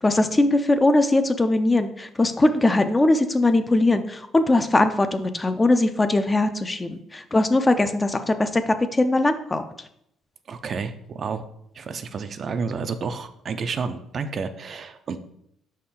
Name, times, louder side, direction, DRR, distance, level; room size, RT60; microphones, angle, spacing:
voice 1, 0.0-9.6, left 2 dB, 15° left, 9 dB, 0.4 m, -20 dB
voice 2, 10.5-11.4 11.7-15.2, right 5 dB, 40° right, 9 dB, 0.4 m, -30 dB
5.9 x 4.3 x 3.7 m, 0.75 s
cardioid pair, 120°, 0 cm